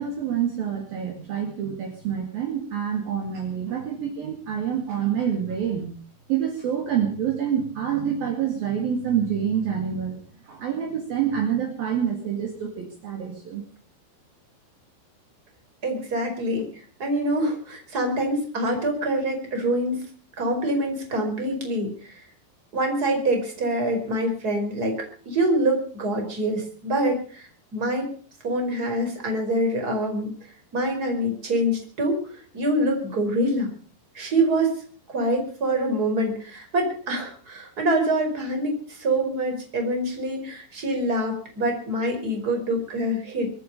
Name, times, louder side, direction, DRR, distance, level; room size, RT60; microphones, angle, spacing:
voice 1, 0.0-5.9 6.3-10.2 10.4-13.6, right 8 dB, 55° right, 2 dB, 3.9 m, -27 dB
voice 2, 15.8-20.0 20.4-22.2 22.7-28.1 28.4-30.3 30.7-33.7 34.1-34.7 35.1-43.5, right 1 dB, 20° right, 3 dB, 5.0 m, -25 dB
25.0 x 9.7 x 5.4 m, 0.43 s
omnidirectional pair, 5.4 m